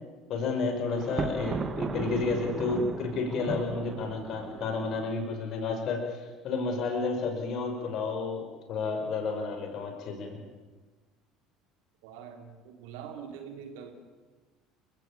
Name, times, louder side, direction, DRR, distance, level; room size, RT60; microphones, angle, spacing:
voice 1, 0.3-10.4, left 4 dB, 45° left, 4 dB, 6.0 m, -31 dB
Thunder, 1.0-5.1, right 4 dB, 30° right, 1.8 m, -35 dB
voice 2, 12.0-13.9, right 7 dB, 60° right, 5 dB, 3.6 m, -44 dB
29.0 x 16.0 x 8.9 m, 1.3 s
figure-of-eight pair, 60°, 0 cm